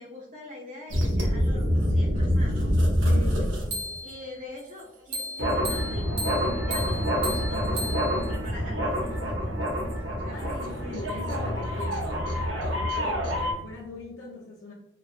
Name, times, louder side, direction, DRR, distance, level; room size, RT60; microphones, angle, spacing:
voice 1, 0.0-2.7 4.0-7.8 8.3-9.8 10.1-10.7, left 2 dB, 40° right, -7 dB, 0.5 m, -43 dB
sound 1, 0.9-4.2 5.1-13.5, equal, 85° right, 0.7 m, -26 dB
voice 2, 3.0-4.0 10.3-14.7, left 2 dB, 85° left, -3 dB, 0.4 m, -41 dB
2.6 x 2.3 x 2.4 m, 0.91 s
head